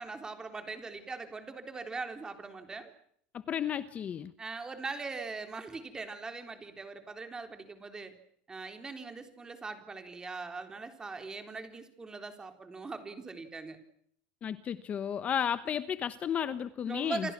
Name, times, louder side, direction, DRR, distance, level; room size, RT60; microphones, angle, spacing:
voice 1, 0.0-2.9 4.4-8.2 8.5-13.8 16.9-17.3, right 4 dB, 15° right, 7 dB, 3.8 m, -41 dB
voice 2, 3.5-4.3 14.4-17.3, left 8 dB, 30° left, 13 dB, 1.0 m, -33 dB
28.5 x 24.5 x 6.0 m, 0.66 s
cardioid pair, 150°, 5 cm